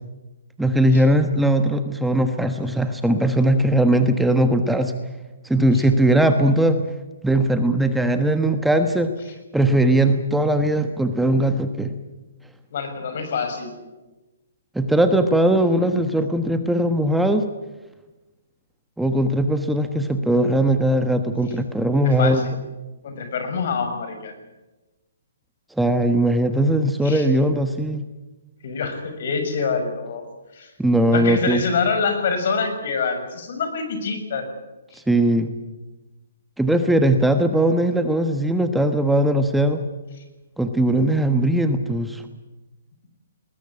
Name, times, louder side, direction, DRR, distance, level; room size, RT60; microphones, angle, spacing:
voice 1, 0.6-4.9 5.4-6.9 7.2-9.1 9.5-11.9 14.7-17.4 19.0-22.5 25.8-28.1 30.8-31.6 34.9-35.5 36.6-39.8 40.6-42.2, right 1 dB, 5° right, 7 dB, 1.3 m, -19 dB
voice 2, 12.7-13.7 22.0-22.6 23.0-24.3 27.0-27.3 28.6-30.2 30.5-30.7 31.1-34.5, left 5 dB, 55° left, 7 dB, 6.5 m, -26 dB
21.0 x 20.0 x 9.9 m, 1.1 s
hypercardioid pair, 145°, 0 cm